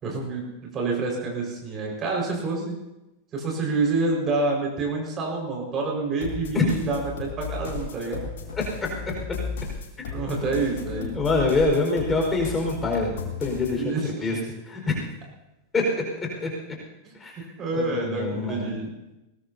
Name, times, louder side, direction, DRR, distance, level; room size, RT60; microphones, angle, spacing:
voice 1, 0.0-2.8 3.3-8.2 10.1-11.1 13.7-14.1 17.6-18.9, right 3 dB, 30° right, 0 dB, 5.2 m, -27 dB
sound 1, 6.2-13.8, left 5 dB, 60° left, 3.2 m, -35 dB
voice 2, 8.5-8.9 10.0-10.1 10.9-14.4 14.7-15.0 15.7-16.5 17.1-17.3 17.7-18.8, left 3 dB, 15° left, 0 dB, 4.9 m, -25 dB
21.5 x 19.5 x 2.8 m, 0.98 s
figure-of-eight pair, 90°, 0 cm